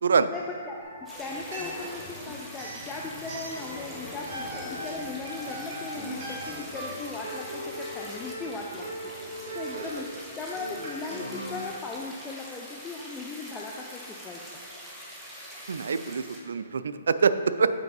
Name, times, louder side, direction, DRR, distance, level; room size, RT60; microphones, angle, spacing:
voice 1, 0.3-9.2 9.5-14.5, left 3 dB, 15° left, -1 dB, 0.4 m, -38 dB
sound 1, 0.8-2.1 2.5-3.9 4.3-11.7, right 1 dB, 45° right, 1.7 m, -39 dB
sound 2, 1.1-9.9, left 2 dB, 30° left, 1.1 m, -44 dB
sound 3, 1.1-16.4, equal, 5° right, 1.1 m, -44 dB
voice 2, 15.7-17.7, right 5 dB, 80° right, 12 dB, 0.3 m, -25 dB
7.8 x 5.2 x 4.0 m, 2.1 s
hypercardioid pair, 155°, 0 cm